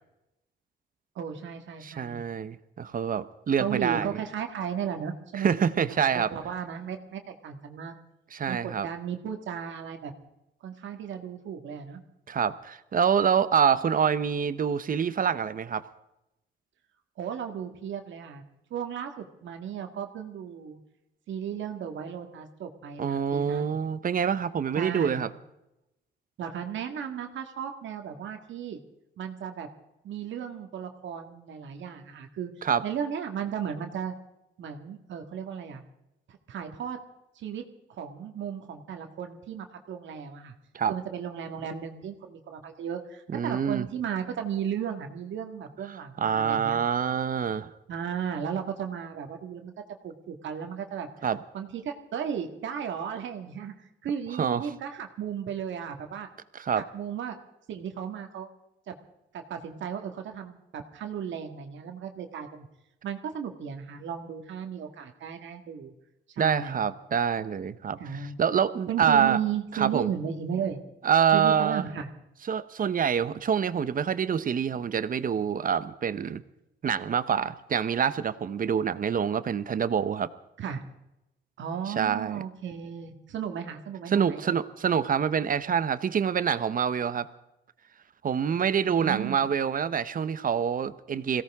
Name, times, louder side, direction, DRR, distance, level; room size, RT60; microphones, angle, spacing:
voice 1, 1.2-2.2 3.6-5.5 5.9-7.9 8.5-10.1 10.6-12.0 17.2-18.4 18.7-20.8 21.3-23.8 24.7-25.2 26.4-28.8 29.2-29.7 30.0-32.5 32.8-34.1 34.6-35.8 36.3-37.0 37.4-40.5 40.9-46.8 47.9-49.7 50.0-51.1 51.5-56.3 56.8-57.4 57.7-58.5 58.9-59.0 59.3-62.7 63.0-65.9 66.4-66.8 68.0-68.4 68.9-70.8 71.3-72.1 80.6-80.8 81.6-84.6 88.9-89.4, right 8 dB, 70° right, 5 dB, 1.8 m, -35 dB
voice 2, 1.8-4.1 5.4-6.3 8.3-8.9 12.3-15.9 23.0-25.3 32.6-32.8 40.7-40.9 43.3-43.9 46.2-47.7 51.2-51.4 54.4-54.7 56.5-56.9 66.4-68.0 68.4-69.4 69.7-70.1 71.0-71.8 72.5-76.4 76.8-80.3 82.0-82.4 84.1-87.3 88.2-91.4, right 7 dB, 45° right, 14 dB, 0.9 m, -26 dB
22.0 x 17.0 x 3.6 m, 0.90 s
cardioid pair, 90°, 20 cm